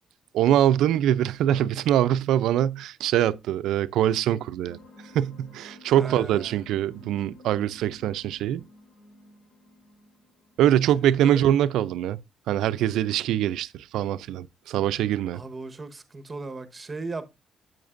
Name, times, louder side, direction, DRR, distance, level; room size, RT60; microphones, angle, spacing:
voice 1, 0.3-4.8 5.1-8.6 10.6-12.2 12.5-15.4, right 11 dB, 85° right, 0.4 m, -23 dB
sound 1, 4.6-11.7, left 2 dB, 55° left, 6.2 m, -52 dB
voice 2, 6.0-6.6 11.2-11.4 15.3-17.3, right 3 dB, 25° right, 1.2 m, -37 dB
9.4 x 7.8 x 2.5 m
cardioid pair, 90°, 0 cm